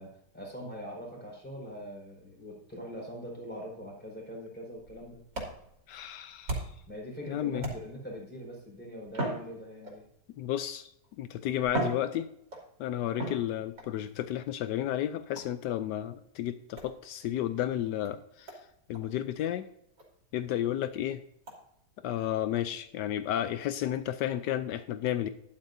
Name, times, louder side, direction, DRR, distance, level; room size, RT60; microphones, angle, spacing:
voice 1, 0.0-5.2 6.9-10.0, equal, 5° left, -3 dB, 4.7 m, -42 dB
sound 1, 4.8-6.9 7.6-8.2 9.1-10.2 11.0-11.1 11.6-12.7 13.2-13.9 15.3-15.7 16.8-16.9 17.6-17.7 18.0-18.1 18.5-18.6 18.9-19.0 19.5-19.6 20.0-20.1 20.5-20.6 21.5-21.6, right 2 dB, 85° right, 3.5 m, -37 dB
voice 2, 5.9-6.6 7.2-7.6 10.4-10.9 11.2-12.3 12.8-18.5 18.9-19.7 20.3-21.2 22.0-25.3, left 11 dB, 80° left, 11 dB, 1.2 m, -32 dB
12.5 x 11.5 x 2.7 m, 0.74 s
omnidirectional pair, 1.8 m